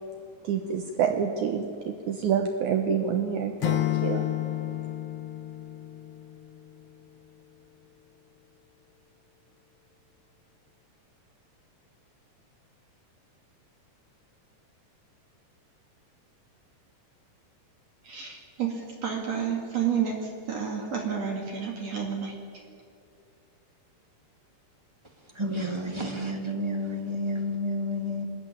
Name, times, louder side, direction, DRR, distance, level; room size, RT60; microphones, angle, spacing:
voice 1, 0.4-4.3, right 7 dB, 70° right, 6 dB, 2.3 m, -27 dB
Acoustic guitar / Strum, 3.6-6.7, left 14 dB, 80° left, 1.2 m, -30 dB
voice 2, 18.1-22.3, right 7 dB, 50° right, 1 dB, 3.3 m, -30 dB
voice 3, 25.2-28.2, left 1 dB, 15° right, 2 dB, 0.9 m, -30 dB
24.0 x 13.5 x 10.0 m, 2.5 s
omnidirectional pair, 3.8 m